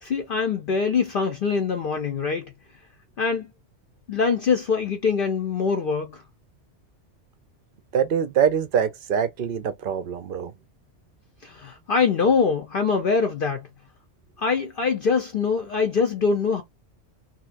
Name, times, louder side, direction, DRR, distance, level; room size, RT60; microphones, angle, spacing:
voice 1, 0.0-2.5 3.2-3.5 4.1-6.2 11.4-13.7 14.4-16.6, left 5 dB, 55° left, 0.7 m, -23 dB
voice 2, 7.9-10.5, right 8 dB, 60° right, 0.6 m, -24 dB
3.1 x 2.8 x 2.4 m
omnidirectional pair, 1.2 m